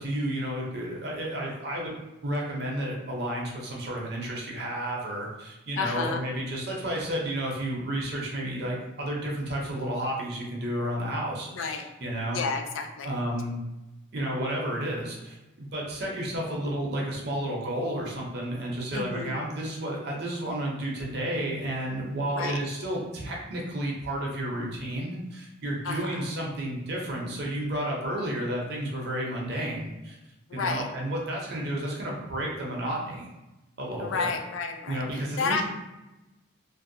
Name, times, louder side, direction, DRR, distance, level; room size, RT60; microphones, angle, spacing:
voice 1, 0.0-2.0 2.2-12.4 13.0-13.6 14.1-30.2 30.5-33.3 33.8-34.3 34.9-35.6, right 1 dB, 50° right, -2 dB, 0.6 m, -31 dB
voice 2, 5.8-6.2 11.5-11.8 12.3-13.1 18.9-19.4 22.3-22.6 25.8-26.3 30.5-30.9 34.0-35.6, left 4 dB, 75° left, 5 dB, 0.3 m, -31 dB
2.5 x 2.1 x 2.6 m, 1.0 s
head